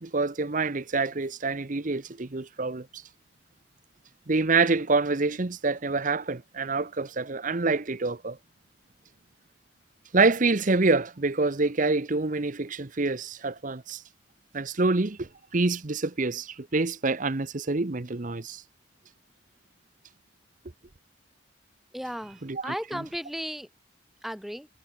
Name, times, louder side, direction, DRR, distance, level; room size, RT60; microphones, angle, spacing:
voice 1, 0.0-3.0 4.3-8.4 10.1-14.0 14.5-18.6 22.4-23.0, right 3 dB, 40° right, 0.9 m, -26 dB
voice 2, 21.9-23.7 24.2-24.7, equal, ahead, 0.8 m, -35 dB
head